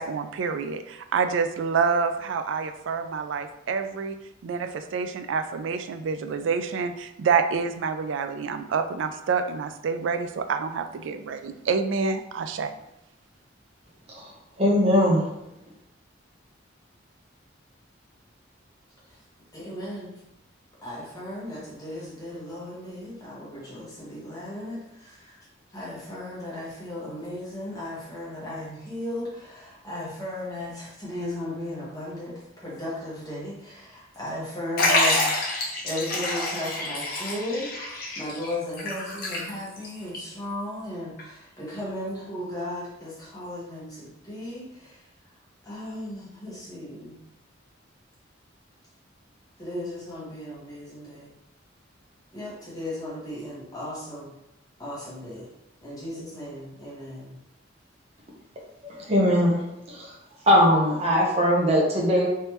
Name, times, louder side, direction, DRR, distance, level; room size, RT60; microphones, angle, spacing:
voice 1, 0.0-4.2 4.4-12.7, right 5 dB, 75° right, 9 dB, 0.3 m, -27 dB
voice 2, 14.6-15.2 58.8-59.6 59.9-60.2 60.5-62.3, equal, 35° right, -2 dB, 0.9 m, -20 dB
voice 3, 19.5-20.1 20.8-25.4 25.7-45.0 45.6-47.2 49.6-51.3 52.3-54.3 54.8-55.5 55.8-57.4, left 1 dB, 20° left, -7 dB, 1.3 m, -36 dB
Liquid, 34.8-39.9 40.1-40.2 41.2-41.3, left 2 dB, 50° left, 0.9 m, -27 dB
3.3 x 3.1 x 3.0 m, 0.84 s
head